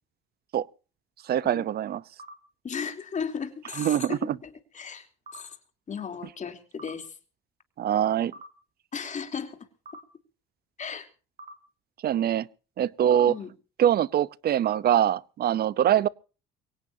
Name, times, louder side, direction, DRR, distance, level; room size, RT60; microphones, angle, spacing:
voice 1, 1.3-2.0 3.8-4.4 7.8-8.3 12.0-12.5 12.8-13.3 13.8-16.1, right 10 dB, 50° right, 0.7 m, -23 dB
sound 1, 2.2-2.3 3.7-3.9 5.3-5.4 6.8-6.9 8.3-8.5 9.8-10.0 11.4-11.5 13.1-13.2 14.6-14.8, right 1 dB, 35° right, 2.6 m, -43 dB
voice 2, 2.6-5.1 5.3-5.6 5.9-7.1 8.9-9.6 10.8-11.1 13.3-13.5, left 6 dB, 40° left, 3.3 m, -35 dB
23.5 x 17.5 x 2.8 m
supercardioid pair, 90°, 20 cm